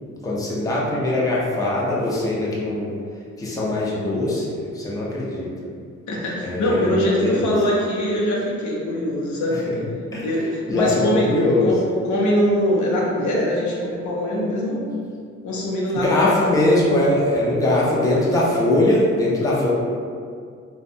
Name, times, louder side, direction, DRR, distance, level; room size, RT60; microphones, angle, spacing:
voice 1, 0.2-2.9 3.4-5.5 6.4-7.5 9.7-9.8 10.1-10.3 10.7-11.7 15.9-19.7, left 1 dB, 10° left, -6 dB, 0.5 m, -21 dB
voice 2, 6.1-9.6 10.2-11.3 11.6-15.0 15.4-16.6 19.4-19.7, equal, 70° left, -3 dB, 0.7 m, -23 dB
2.5 x 2.2 x 2.6 m, 2.2 s
cardioid pair, 90°, 30 cm